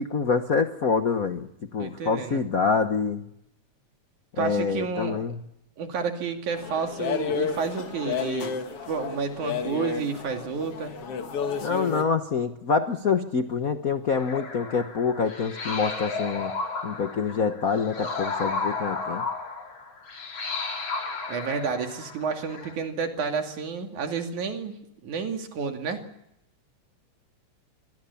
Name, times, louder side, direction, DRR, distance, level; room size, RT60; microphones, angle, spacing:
voice 1, 0.0-3.2 4.4-5.4 11.6-16.5 16.8-19.2, left 5 dB, 90° left, 8 dB, 0.7 m, -26 dB
voice 2, 1.8-2.5 4.4-5.2 5.8-8.6 8.9-10.9 21.3-24.8 25.0-26.0, right 5 dB, 80° right, 5 dB, 3.9 m, -30 dB
sound 1, 6.6-12.0, left 6 dB, 55° left, 2.6 m, -31 dB
sound 2, 14.1-22.7, left 3 dB, 70° left, 5.8 m, -33 dB
26.0 x 22.0 x 7.1 m, 0.80 s
omnidirectional pair, 3.4 m